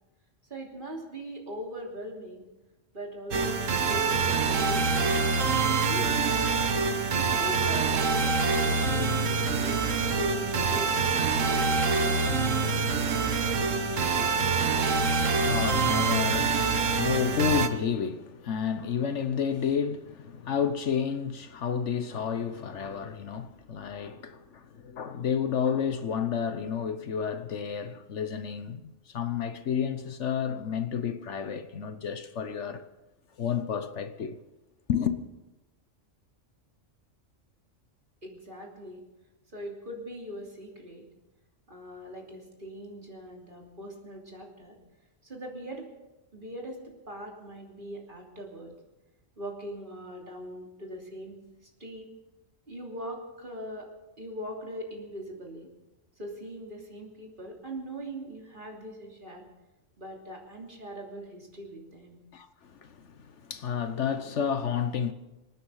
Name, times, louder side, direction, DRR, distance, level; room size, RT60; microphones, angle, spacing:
voice 1, 0.5-2.4 2.9-5.1 5.6-6.5 7.1-11.0 11.4-12.8 38.2-39.0 39.5-41.0 41.7-44.8 45.2-45.9 46.3-48.7 49.4-51.4 51.8-52.1 52.7-53.9 54.2-55.7 56.2-59.4 60.0-62.2, right 1 dB, 40° right, 3.2 m, -41 dB
sound 1, 3.3-17.7, right 4 dB, 75° right, 1.5 m, -25 dB
voice 2, 14.8-32.8 33.4-34.4 34.9-35.2 62.3-65.1, left 7 dB, 65° left, 1.2 m, -31 dB
26.5 x 9.5 x 5.6 m
omnidirectional pair, 1.3 m